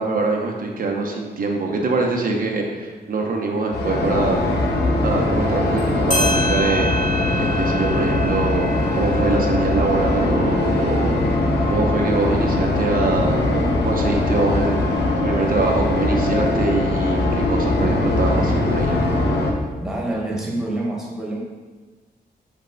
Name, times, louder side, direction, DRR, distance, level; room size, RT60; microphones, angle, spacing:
voice 1, 0.0-4.4 5.0-6.9 7.3-8.7 8.9-11.2 11.7-17.2 17.5-19.0, right 3 dB, 55° right, 0 dB, 0.8 m, -24 dB
sound 1, 3.7-19.5, left 2 dB, 85° left, 0.9 m, -21 dB
sound 2, 5.8-5.9 6.1-11.2, equal, 45° left, 2.1 m, -28 dB
voice 2, 19.8-21.4, right 1 dB, 5° right, -4 dB, 1.4 m, -26 dB
6.0 x 5.4 x 3.9 m, 1.3 s
wide cardioid pair, 155°, 17 cm